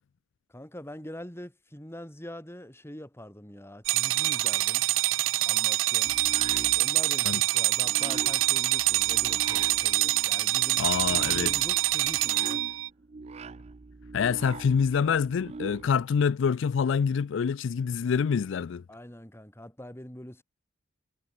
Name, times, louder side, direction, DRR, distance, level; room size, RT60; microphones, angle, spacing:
voice 1, 0.5-4.9 5.5-6.2 6.7-12.6 18.9-20.4, equal, 15° left, 3.7 m, -44 dB
sound 1, 3.9-12.9, right 17 dB, 80° right, 0.5 m, -25 dB
sound 2, 6.0-16.0, right 3 dB, 35° right, 0.5 m, -43 dB
voice 2, 10.8-11.5 14.1-18.8, left 6 dB, 70° left, 0.4 m, -26 dB
head